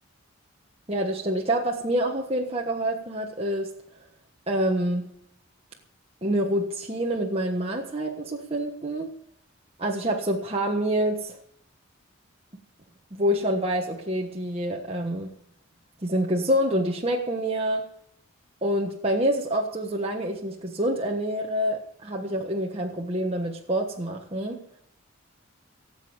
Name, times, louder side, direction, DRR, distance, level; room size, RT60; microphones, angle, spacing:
voice 1, 0.9-3.7 4.5-5.0 6.2-9.1 9.8-11.4 13.1-15.3 16.0-17.8 18.6-24.6, right 1 dB, 30° right, 0 dB, 1.4 m, -27 dB
18.0 x 8.1 x 7.1 m, 0.69 s
head